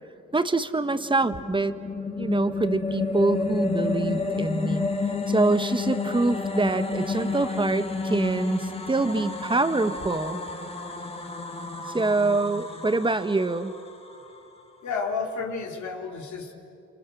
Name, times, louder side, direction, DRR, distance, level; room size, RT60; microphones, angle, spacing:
voice 1, 0.3-1.7 2.2-4.9 5.3-10.4 11.9-13.7, right 3 dB, 15° right, 10 dB, 1.4 m, -25 dB
sound 1, 1.0-14.4, left 3 dB, 20° left, 2.6 m, -30 dB
voice 2, 14.8-16.5, left 4 dB, 70° left, 0 dB, 4.0 m, -31 dB
28.5 x 28.0 x 7.2 m, 2.6 s
cardioid pair, 90°, 30 cm